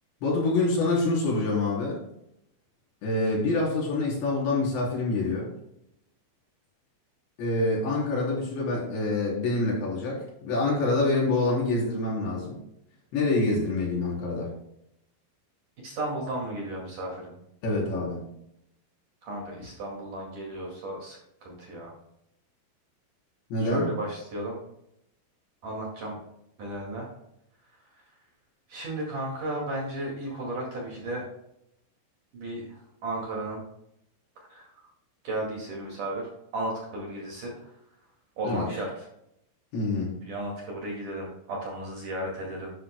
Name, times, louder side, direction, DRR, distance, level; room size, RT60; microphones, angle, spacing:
voice 1, 0.2-2.0 3.0-5.5 7.4-12.6 13.1-14.5 17.6-18.3 23.5-23.9 38.4-38.7 39.7-40.1, left 2 dB, 65° left, -4 dB, 5.8 m, -26 dB
voice 2, 15.8-17.3 19.2-21.9 23.6-24.6 25.6-26.2 26.6-27.1 27.7-28.0 28.7-31.3 32.3-33.6 34.4-34.9 35.2-37.8 38.4-39.1 40.2-42.7, right 1 dB, 50° right, -2 dB, 3.1 m, -34 dB
11.0 x 11.0 x 2.2 m, 0.77 s
omnidirectional pair, 5.5 m